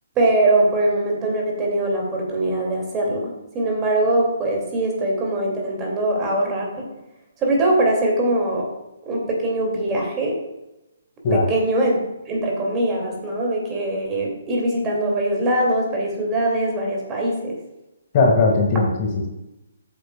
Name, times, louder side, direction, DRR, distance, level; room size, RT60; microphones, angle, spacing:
voice 1, 0.2-6.9 7.4-8.7 9.0-10.4 11.3-12.0 12.3-17.6, right 1 dB, 20° right, -2 dB, 2.7 m, -22 dB
voice 2, 18.1-19.3, left 3 dB, 35° left, 1 dB, 2.1 m, -18 dB
13.5 x 8.0 x 2.4 m, 0.93 s
figure-of-eight pair, 135°, 0 cm